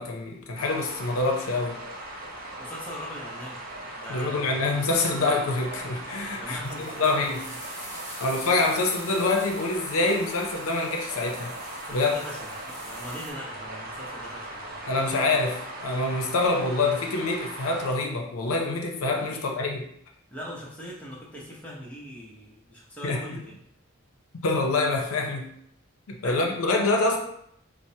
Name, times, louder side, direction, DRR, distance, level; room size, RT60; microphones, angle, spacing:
voice 1, 0.0-1.8 4.1-7.4 8.2-11.5 11.9-12.1 14.9-19.8 23.0-23.4 24.4-25.5 26.1-27.2, left 3 dB, 80° left, 2 dB, 0.5 m, -26 dB
sound 1, 0.6-17.9, right 1 dB, 45° right, 0.6 m, -39 dB
voice 2, 2.6-3.6 3.9-4.7 6.4-7.6 11.9-14.8 19.3-19.6 20.3-23.4 26.2-26.4, equal, 5° left, -5 dB, 0.6 m, -41 dB
sound 2, 6.7-13.3, right 1 dB, 20° right, 1.1 m, -44 dB
4.4 x 2.0 x 2.7 m, 0.71 s
head